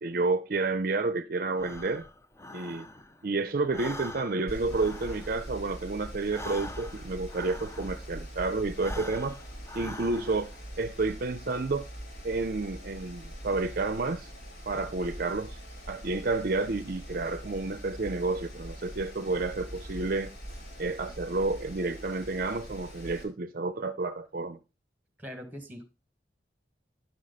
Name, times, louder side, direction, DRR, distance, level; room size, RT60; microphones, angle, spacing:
voice 1, 0.0-2.1 2.5-2.9 3.2-9.4 9.7-10.5 10.8-11.9 12.2-14.3 14.7-15.6 15.9-20.3 20.8-24.6, right 3 dB, 55° right, 0.5 m, -30 dB
Breathing, 1.5-3.3 3.6-8.2 8.7-10.6, left 1 dB, 15° left, 0.7 m, -44 dB
Mechanical fan, 4.5-23.2, equal, 65° left, 3.4 m, -43 dB
voice 2, 25.2-25.8, equal, 10° right, 2.1 m, -41 dB
10.5 x 6.4 x 4.1 m
head